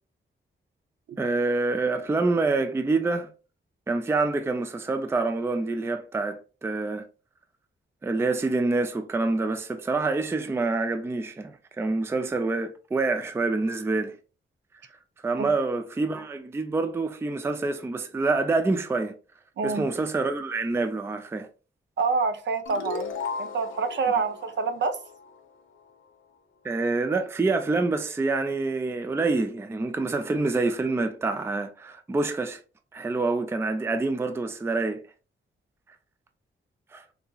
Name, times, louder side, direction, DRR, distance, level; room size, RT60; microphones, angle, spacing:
voice 1, 1.2-3.3 3.9-7.1 8.0-14.2 15.2-19.1 19.6-21.5 26.6-32.6 32.9-35.0 36.9-37.0, right 3 dB, 10° right, 0.3 m, -26 dB
voice 2, 22.0-23.1 23.4-25.0, right 4 dB, 65° right, 0.5 m, -27 dB
sound 1, 22.7-25.9, left 5 dB, 75° left, 0.6 m, -36 dB
3.8 x 2.8 x 2.3 m
wide cardioid pair, 150°, 21 cm